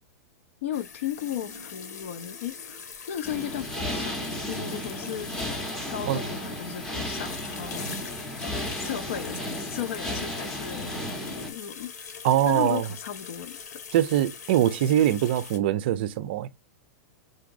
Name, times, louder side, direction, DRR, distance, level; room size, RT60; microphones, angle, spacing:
voice 1, 0.6-5.3 5.9-7.8 8.7-11.9 12.4-13.8, left 11 dB, 50° left, 0.5 m, -35 dB
sound 1, 0.7-15.6, left 6 dB, 80° left, 1.4 m, -42 dB
sound 2, 3.2-11.5, equal, 5° left, 0.7 m, -34 dB
voice 2, 12.2-12.9 13.9-16.5, right 12 dB, 40° right, 0.4 m, -23 dB
4.8 x 3.9 x 2.5 m
supercardioid pair, 180°, 9 cm